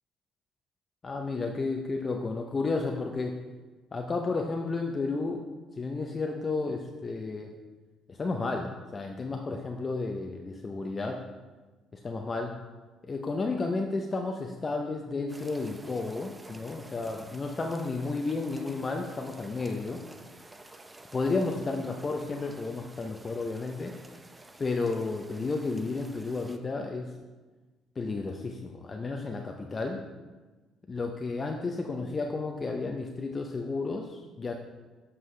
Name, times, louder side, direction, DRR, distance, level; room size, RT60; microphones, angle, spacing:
voice 1, 1.0-3.4 3.9-5.5 5.8-7.5 8.1-11.2 11.9-12.5 13.1-20.0 21.1-23.9 24.6-27.1 28.0-30.0 30.9-34.5, left 3 dB, 35° left, 2 dB, 0.6 m, -32 dB
sound 1, 15.3-26.6, right 2 dB, 20° right, 0.6 m, -51 dB
7.9 x 5.5 x 3.2 m, 1.3 s
supercardioid pair, 65°, 0 cm